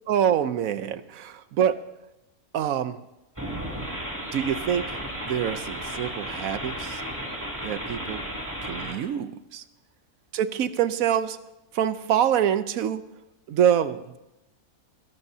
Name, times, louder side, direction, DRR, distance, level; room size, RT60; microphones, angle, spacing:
voice 1, 0.1-1.8 2.5-3.0 4.3-5.0 5.2-7.0 7.6-8.2 8.6-9.6 10.3-11.4 11.7-13.0 13.5-14.2, right 9 dB, 70° right, 12 dB, 1.1 m, -25 dB
sound 1, 3.3-8.9, right 1 dB, 10° right, 2.7 m, -34 dB
22.5 x 18.0 x 2.8 m, 0.93 s
omnidirectional pair, 1.6 m